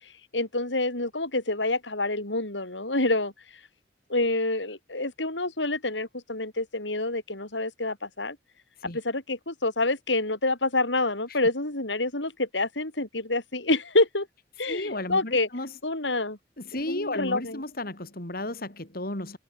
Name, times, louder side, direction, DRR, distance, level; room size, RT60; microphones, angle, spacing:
voice 1, 0.0-3.3 4.1-8.4 8.8-14.3 14.6-15.5 15.8-16.4 16.9-17.6, left 2 dB, 80° left, 6.4 m, -27 dB
voice 2, 14.7-15.7 16.6-19.4, left 1 dB, 55° left, 4.1 m, -33 dB
open air
head